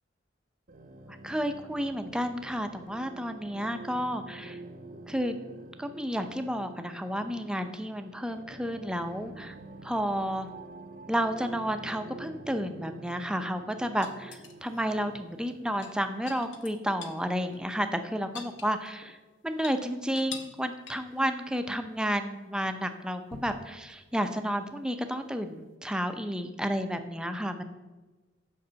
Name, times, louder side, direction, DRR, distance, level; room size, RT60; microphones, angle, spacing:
sound 1, 0.7-15.9, right 2 dB, 45° right, 0.7 m, -47 dB
voice 1, 1.1-4.6 5.1-5.4 5.8-9.6 9.8-10.5 11.1-19.2 19.4-27.6, equal, 5° right, 7 dB, 0.5 m, -31 dB
sound 2, 14.0-14.8 15.7-17.2 17.5-17.6 17.9-19.2 19.5-19.8 20.1-20.6 20.9-21.2 23.3-23.6 25.3-25.4, left 5 dB, 70° left, 0.9 m, -44 dB
6.7 x 5.4 x 6.8 m, 1.2 s
head